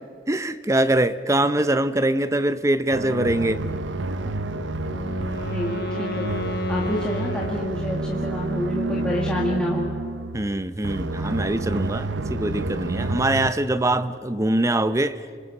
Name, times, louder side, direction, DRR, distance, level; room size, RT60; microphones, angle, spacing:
voice 1, 0.3-3.6 10.3-15.2, right 1 dB, 15° right, 13 dB, 0.7 m, -23 dB
sound 1, 2.9-13.5, right 2 dB, 70° right, 0.8 m, -29 dB
Wind instrument woodwind instrument, 4.4-8.4, left 3 dB, 50° left, 0.9 m, -34 dB
voice 2, 5.5-6.3 6.7-9.9, equal, 5° left, -4 dB, 1.9 m, -28 dB
26.0 x 25.5 x 5.6 m, 2.1 s
head